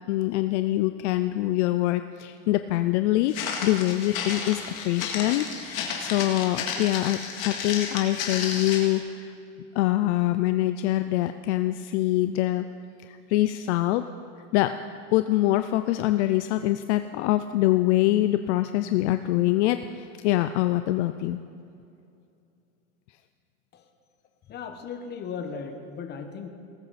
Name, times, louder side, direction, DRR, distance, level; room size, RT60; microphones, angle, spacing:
voice 1, 0.0-9.3 9.8-12.7 13.0-14.1 14.5-14.7 15.1-21.4, left 15 dB, 60° left, 10 dB, 0.5 m, -24 dB
Walk footsteps, 3.3-9.0, left 6 dB, 80° left, 2.2 m, -32 dB
voice 2, 24.5-26.5, left 6 dB, 25° left, 6 dB, 1.1 m, -36 dB
18.5 x 8.7 x 4.2 m, 2.6 s
supercardioid pair, 135°, 40 cm